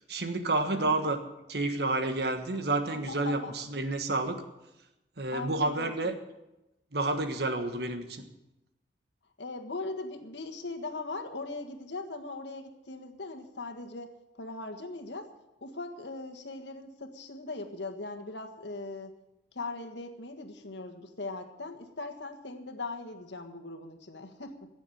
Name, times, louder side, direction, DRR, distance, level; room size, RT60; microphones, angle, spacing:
voice 1, 0.1-1.2 1.5-4.4 5.2-6.1 6.9-8.2, right 2 dB, 60° right, 7 dB, 1.4 m, -29 dB
voice 2, 0.7-1.1 2.9-3.7 5.3-6.1 9.4-15.3 15.6-19.1 19.5-24.7, left 3 dB, 75° left, 7 dB, 1.6 m, -40 dB
16.5 x 7.2 x 9.2 m, 0.94 s
head